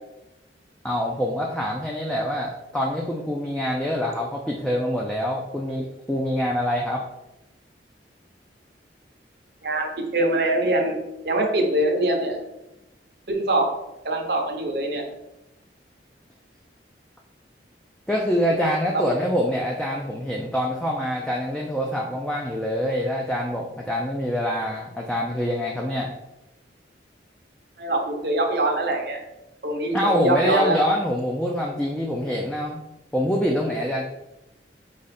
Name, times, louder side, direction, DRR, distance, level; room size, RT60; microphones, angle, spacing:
voice 1, 0.8-7.0 18.1-26.1 29.9-32.8 33.1-34.0, equal, 5° left, -2 dB, 0.4 m, -25 dB
voice 2, 9.6-11.0 11.2-12.4 13.3-13.7 14.0-15.0 18.9-19.1 27.8-29.2 29.6-30.8, right 2 dB, 60° right, 2 dB, 0.7 m, -23 dB
4.9 x 2.4 x 4.1 m, 0.93 s
head